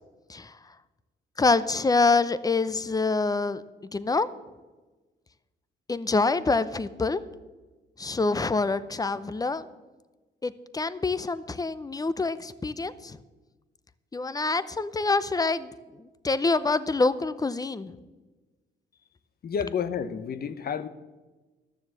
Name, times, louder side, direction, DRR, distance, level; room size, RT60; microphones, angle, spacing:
voice 1, 1.4-3.6 3.9-4.3 5.9-7.2 8.0-9.7 10.4-13.2 14.1-17.9, left 3 dB, 20° left, 15 dB, 0.6 m, -26 dB
voice 2, 19.4-20.9, left 7 dB, 50° left, 12 dB, 0.8 m, -30 dB
12.0 x 7.1 x 7.7 m, 1.2 s
cardioid pair, 90°, 20 cm